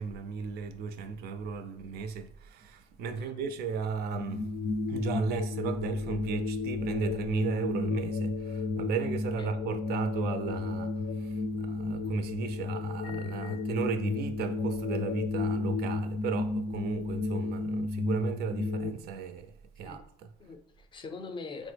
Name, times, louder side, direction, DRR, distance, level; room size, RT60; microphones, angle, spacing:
voice 1, 0.0-4.6 4.9-20.3, right 6 dB, 70° right, 0.4 m, -35 dB
sound 1, 4.1-18.9, left 3 dB, 80° left, 0.4 m, -32 dB
voice 2, 20.4-21.7, left 4 dB, 30° left, 0.4 m, -43 dB
3.5 x 2.0 x 3.2 m
cardioid pair, 110°, 17 cm